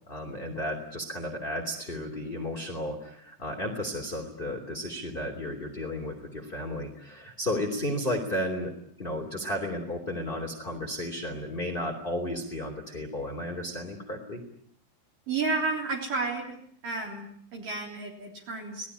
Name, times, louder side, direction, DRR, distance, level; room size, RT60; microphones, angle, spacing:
voice 1, 0.1-14.4, left 1 dB, 15° left, 1 dB, 2.5 m, -33 dB
voice 2, 15.3-16.6 16.8-18.9, right 3 dB, 50° right, 0 dB, 5.0 m, -31 dB
27.5 x 19.0 x 9.9 m, 0.67 s
omnidirectional pair, 5.1 m